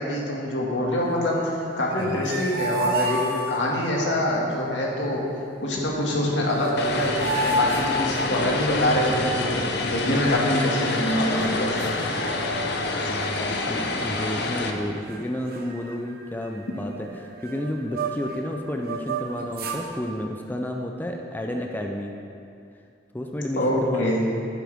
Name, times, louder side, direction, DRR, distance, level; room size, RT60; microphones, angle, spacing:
voice 1, 0.0-1.4 1.8-5.2 5.6-12.0 13.0-13.1 23.6-24.2, left 1 dB, 80° left, -3 dB, 2.0 m, -25 dB
sound 1, 1.9-3.9 6.1-6.2 6.5-8.7 10.0-10.9 11.4-11.5 11.8-12.9 13.2-13.5 14.1-14.7 15.0-15.2 15.5-18.4 18.8-19.8, right 1 dB, 55° right, 1.0 m, -31 dB
voice 2, 2.0-2.3 5.2-5.3 12.8-22.2 23.1-24.3, left 1 dB, 10° left, 2 dB, 0.5 m, -31 dB
Vehicle, 6.8-14.7, left 3 dB, 65° left, 0.8 m, -27 dB
11.5 x 9.4 x 3.5 m, 2.5 s
head